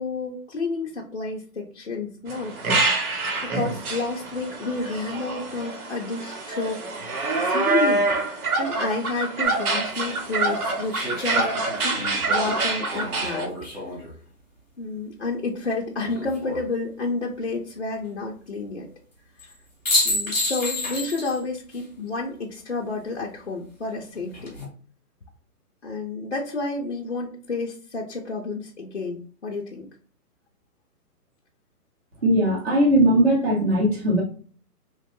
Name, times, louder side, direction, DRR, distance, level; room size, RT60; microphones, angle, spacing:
voice 1, 0.0-2.6 3.4-6.8 7.4-11.5 11.8-12.0 12.3-13.5 14.8-18.9 20.0-24.5 25.8-29.9, left 3 dB, 45° left, -2 dB, 0.4 m, -30 dB
sound 1, 2.3-13.5, right 3 dB, 65° right, 1.0 m, -26 dB
sound 2, 9.4-9.5 10.9-14.1 15.9-16.6 19.4-19.5 19.8-21.4 21.7-21.8 24.1-24.6, left 1 dB, 10° left, 0.7 m, -29 dB
voice 2, 32.2-34.2, right 1 dB, 40° right, -4 dB, 0.7 m, -19 dB
3.0 x 2.2 x 2.9 m, 0.42 s
hypercardioid pair, 170°, 48 cm